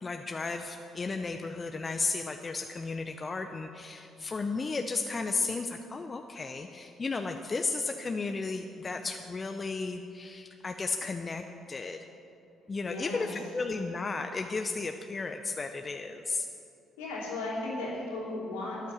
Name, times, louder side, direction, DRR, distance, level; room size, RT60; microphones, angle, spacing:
voice 1, 0.0-11.4 11.7-12.0 12.7-16.5, left 4 dB, 35° left, 6 dB, 0.7 m, -34 dB
voice 2, 12.8-13.4 17.0-18.8, left 2 dB, 75° left, -4 dB, 3.1 m, -35 dB
13.0 x 9.3 x 7.1 m, 2.8 s
figure-of-eight pair, 45°, 0 cm